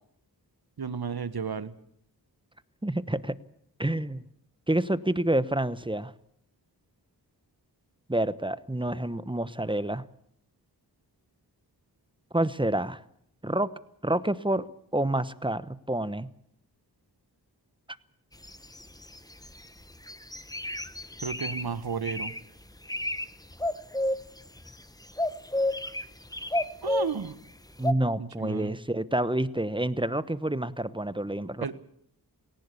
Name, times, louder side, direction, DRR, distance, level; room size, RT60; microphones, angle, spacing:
voice 1, 0.8-1.7 21.2-22.3 26.8-27.3 28.2-28.7 31.6-31.7, right 6 dB, 65° right, 13 dB, 1.5 m, -33 dB
voice 2, 2.8-3.3 3.8-4.2 4.7-6.1 8.1-10.0 12.3-13.0 13.4-13.7 14.0-14.7 14.9-16.3 27.8-31.7, right 1 dB, 10° right, 15 dB, 1.0 m, -28 dB
sound 1, 18.4-19.7 20.1-21.6 22.0-22.4 22.8-23.3 23.5-24.8 25.2-27.3 27.8-27.9, left 1 dB, 10° left, 1.2 m, -30 dB
20.0 x 18.0 x 8.4 m, 0.69 s
cardioid pair, 55°, 40 cm